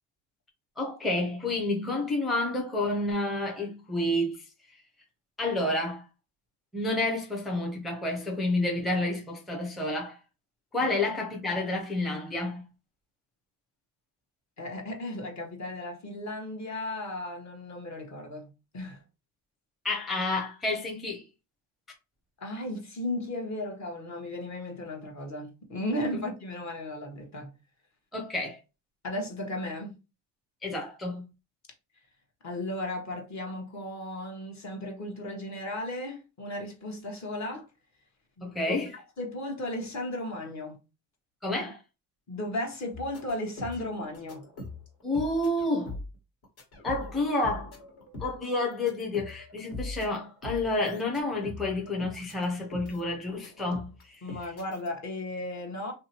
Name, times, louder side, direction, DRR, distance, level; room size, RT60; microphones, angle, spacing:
voice 1, 0.8-4.4 5.4-6.0 6.7-10.2 10.7-12.6 19.8-21.2 28.1-28.6 30.6-31.2 38.4-38.9 41.4-41.8 45.0-45.9 46.8-47.7 48.2-54.2, left 2 dB, ahead, 0.6 m, -29 dB
voice 2, 14.6-18.5 18.7-19.0 22.4-27.5 29.0-30.0 32.4-37.7 38.4-38.8 39.2-40.8 42.3-44.5 54.2-55.9, left 1 dB, 35° left, 1.0 m, -35 dB
sound 1, 42.9-46.1 46.4-53.0 53.3-54.9, left 2 dB, 50° left, 1.4 m, -42 dB
2.7 x 2.2 x 2.8 m
supercardioid pair, 70°, 48 cm